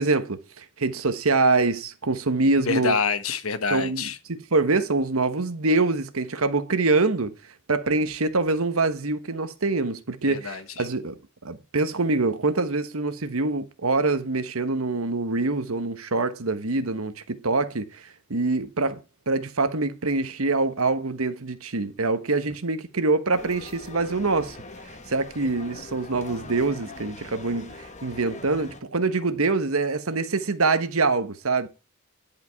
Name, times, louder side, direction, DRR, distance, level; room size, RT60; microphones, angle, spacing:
voice 1, 0.0-2.9 3.7-7.3 7.7-11.1 11.4-19.0 19.3-24.6 25.1-31.7, right 3 dB, 85° right, 1.2 m, -25 dB
voice 2, 2.6-4.2 10.3-10.9, left 5 dB, 80° left, 1.3 m, -27 dB
sound 1, 23.3-28.8, left 3 dB, 35° left, 1.4 m, -42 dB
11.0 x 5.2 x 5.8 m
head